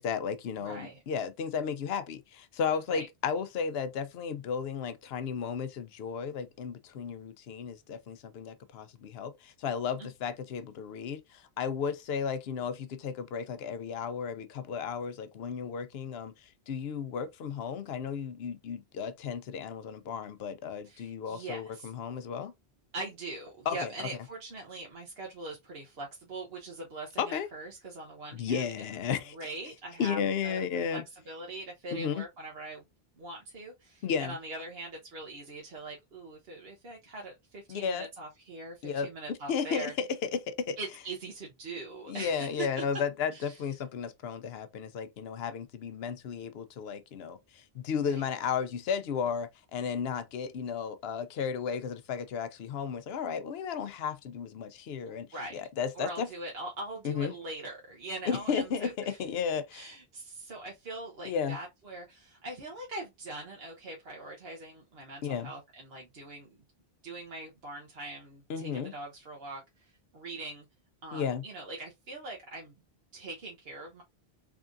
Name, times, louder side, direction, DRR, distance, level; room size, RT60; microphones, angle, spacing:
voice 1, 0.0-16.3 16.7-22.5 23.7-24.1 27.2-27.5 28.3-29.5 30.0-31.0 31.9-32.2 34.0-34.3 37.7-38.1 38.8-39.1 39.5-40.8 42.1-55.3 55.5-56.3 57.0-57.3 58.3-59.9 61.2-61.6 65.2-65.5 68.5-68.9 71.1-71.4, left 6 dB, 75° left, 0.9 m, -34 dB
voice 2, 0.6-1.0 2.9-3.1 10.0-10.1 20.8-21.9 22.9-28.7 29.3-30.6 30.9-31.0 31.3-32.8 33.2-39.9 40.8-42.7 42.9-43.0 43.3-43.6 48.0-48.3 55.1-55.5 55.9-59.2 59.7-66.5 67.0-70.6 71.0-72.7 73.1-74.0, right 2 dB, 75° right, 1.2 m, -42 dB
3.6 x 3.5 x 2.5 m
omnidirectional pair, 1.0 m